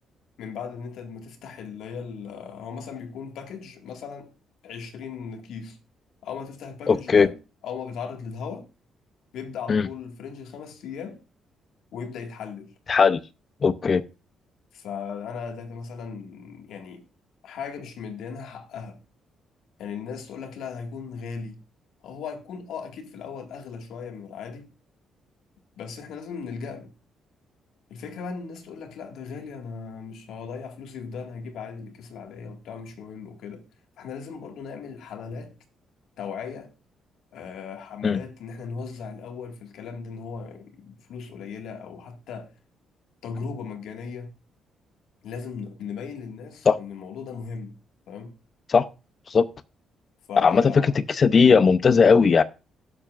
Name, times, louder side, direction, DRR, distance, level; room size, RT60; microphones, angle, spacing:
voice 1, 0.4-4.3 4.6-5.8 6.2-7.3 7.6-8.7 9.3-11.2 11.9-12.7 14.7-17.0 17.4-19.0 19.8-21.6 22.0-24.7 25.8-26.9 27.9-33.7 34.0-35.5 36.2-36.7 37.3-42.5 43.2-44.3 45.2-47.7 48.1-48.3 50.3-50.9 51.5-51.7, left 6 dB, 80° left, 1.9 m, -37 dB
voice 2, 6.9-7.3 9.7-9.9 12.9-13.2 13.6-14.0 38.0-38.2 46.7-46.8 48.7-48.9 49.3-49.5 50.4-52.4, left 5 dB, 40° left, 0.6 m, -18 dB
17.0 x 7.3 x 2.5 m
cardioid pair, 90°, 0 cm